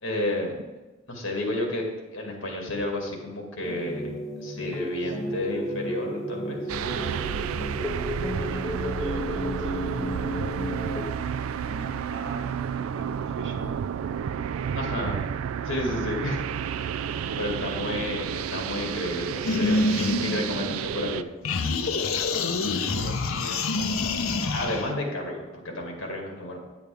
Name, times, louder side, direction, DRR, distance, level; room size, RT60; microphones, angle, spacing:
voice 1, 0.0-0.6 1.1-1.9 2.1-4.1 4.4-6.6 14.8-15.2 15.6-16.4 17.4-21.2 24.5-26.6, left 1 dB, 70° left, 0 dB, 2.1 m, -31 dB
sound 1, 3.6-11.1, equal, 15° left, 0.4 m, -33 dB
voice 2, 4.8-5.6 6.8-7.9 8.3-10.8 11.6-13.9 14.4-15.1 17.6-18.0 22.3-24.5, right 2 dB, 60° right, 5 dB, 1.0 m, -42 dB
sound 2, 6.7-21.2, right 8 dB, 90° right, 0.3 m, -31 dB
sound 3, 19.5-21.1 21.5-24.9, left 3 dB, 85° left, 0.7 m, -26 dB
9.2 x 8.7 x 3.4 m, 1.1 s
head